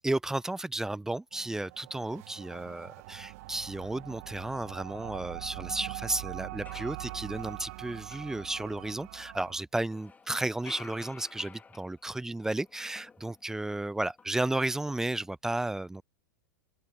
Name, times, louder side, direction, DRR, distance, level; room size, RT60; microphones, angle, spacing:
voice 1, 0.0-16.0, right 2 dB, 5° right, 0.4 m, -33 dB
sound 1, 1.3-9.6, right 22 dB, 55° right, 1.3 m, -43 dB
sound 2, 6.0-6.1 6.4-9.5 9.9-13.8 14.1-14.8, left 5 dB, 15° left, 2.1 m, -53 dB
figure-of-eight pair, 100°, 10 cm